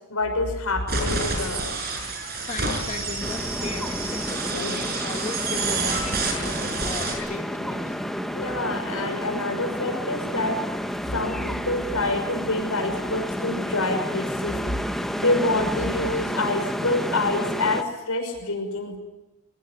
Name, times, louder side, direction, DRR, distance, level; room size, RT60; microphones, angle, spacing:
voice 1, 0.1-1.7 4.5-4.9 7.1-7.2 8.3-10.6 11.1-14.6 15.2-19.0, left 2 dB, 75° left, 5 dB, 6.1 m, -27 dB
sound 1, 0.9-7.2, right 3 dB, 45° right, 6.1 m, -29 dB
voice 2, 2.4-8.0, left 3 dB, 35° left, 2 dB, 1.8 m, -36 dB
sound 2, 3.2-17.8, equal, ahead, 1.3 m, -30 dB
23.0 x 19.0 x 9.9 m, 1.0 s
head